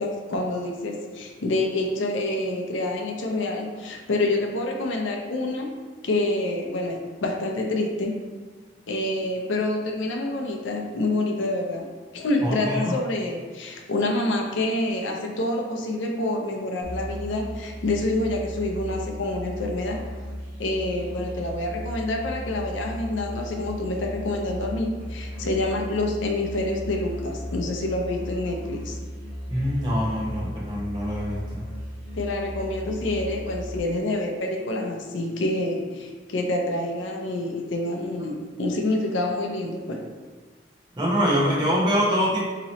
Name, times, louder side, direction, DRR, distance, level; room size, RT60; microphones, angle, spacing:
voice 1, 0.0-8.2 8.9-11.9 12.1-20.0 20.6-29.0 32.1-40.1, left 2 dB, 80° left, 1 dB, 0.5 m, -27 dB
voice 2, 12.4-12.9 29.5-31.6 41.0-42.4, equal, 25° right, -5 dB, 0.8 m, -24 dB
Musical instrument, 16.8-33.8, equal, 55° right, 0.9 m, -36 dB
3.0 x 2.8 x 4.1 m, 1.4 s
head